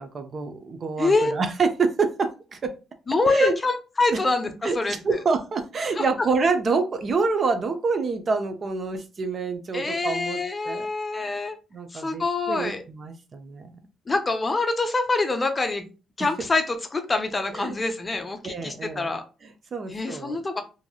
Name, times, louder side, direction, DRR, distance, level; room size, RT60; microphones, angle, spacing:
voice 1, 0.0-2.7 3.3-3.5 4.1-4.2 4.6-10.9 11.2-11.4 11.7-13.7 17.5-17.8 18.4-19.1 19.4-20.4, right 4 dB, 45° right, 8 dB, 0.5 m, -27 dB
voice 2, 1.0-1.3 3.1-5.0 5.9-6.0 9.7-11.6 11.9-12.8 14.1-15.9 16.2-19.2 19.9-20.6, left 3 dB, 25° left, 7 dB, 0.5 m, -25 dB
2.8 x 2.6 x 2.3 m, 0.32 s
cardioid pair, 90°, 0 cm